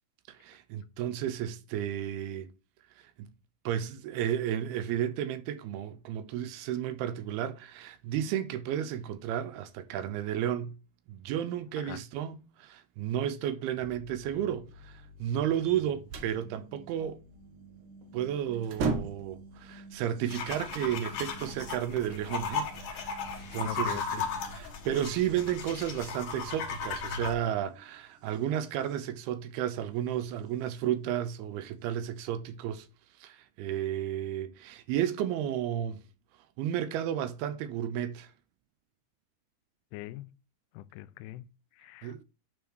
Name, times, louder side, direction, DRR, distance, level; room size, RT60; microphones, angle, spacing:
voice 1, 0.3-2.5 3.0-3.3 3.7-10.8 11.1-17.2 18.1-32.9 33.2-36.0 36.6-38.3 42.0-42.2, right 10 dB, 80° right, 2.5 m, -33 dB
sound 1, 13.7-30.8 31.9-32.0, right 2 dB, 45° right, 2.0 m, -53 dB
sound 2, 15.6-16.4 18.0-18.2 18.5-19.4, right 4 dB, 65° right, 2.1 m, -33 dB
sound 3, 20.3-27.3, left 5 dB, 60° left, 2.3 m, -36 dB
voice 2, 23.6-24.2 39.9-40.3 40.8-41.5 41.8-42.2, left 15 dB, 90° left, 2.6 m, -42 dB
9.3 x 3.8 x 6.2 m
omnidirectional pair, 4.6 m